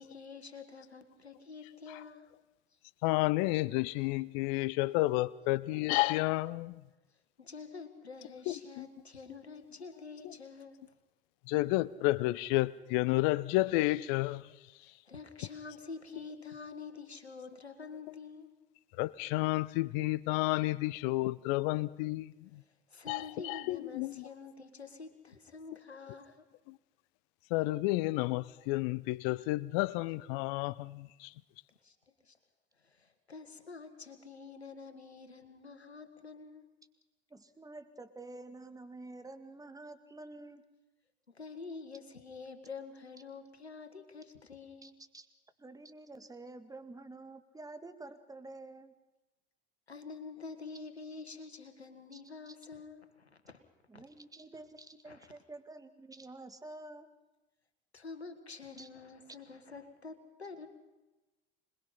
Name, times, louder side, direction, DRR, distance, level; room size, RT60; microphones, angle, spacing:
voice 1, 0.0-2.3 2.7-2.8 7.1-10.9 14.8-18.5 22.6-26.4 31.8-32.4 32.8-36.7 41.3-44.9 49.9-53.6 53.9-54.0 55.1-55.3 57.9-60.7, left 4 dB, 85° left, 9 dB, 1.8 m, -48 dB
voice 2, 3.0-6.8 8.5-8.8 10.2-10.3 11.5-14.5 19.0-22.6 23.1-24.3 26.7-26.8 27.5-31.3, left 19 dB, 55° left, 20 dB, 0.8 m, -31 dB
voice 3, 37.3-40.6 44.8-45.3 45.6-48.9 52.1-52.2 52.5-52.6 53.9-57.1 58.8-58.9, right 2 dB, 10° right, 9 dB, 2.1 m, -49 dB
26.0 x 21.0 x 5.7 m, 1.1 s
figure-of-eight pair, 70°, 31 cm